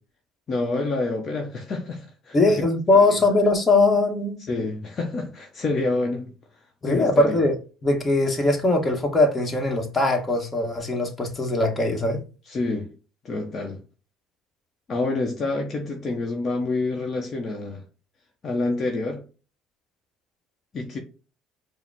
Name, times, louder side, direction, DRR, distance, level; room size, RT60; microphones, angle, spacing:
voice 1, 0.5-2.6 2.9-3.2 4.5-6.3 6.8-7.4 12.5-12.9 13.2-13.8 14.9-17.8 18.4-19.2 20.7-21.0, left 2 dB, 40° left, 0.9 m, -28 dB
voice 2, 2.3-4.4 6.8-7.6 7.8-12.2, left 2 dB, 25° left, 1.2 m, -21 dB
4.7 x 2.1 x 3.5 m
supercardioid pair, 95°, 0 cm